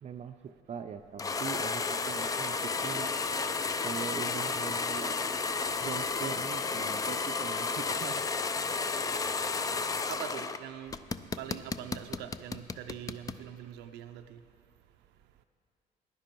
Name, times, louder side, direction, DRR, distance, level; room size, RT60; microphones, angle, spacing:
voice 1, 0.0-3.1 3.8-5.2 5.8-8.2, right 7 dB, 40° right, 0.5 m, -41 dB
sound 1, 1.2-10.6 10.9-13.4, left 4 dB, 20° left, 0.4 m, -32 dB
voice 2, 10.1-11.0 11.4-14.4, right 10 dB, 85° right, 0.6 m, -43 dB
16.0 x 10.5 x 4.5 m
cardioid pair, 110°, 17 cm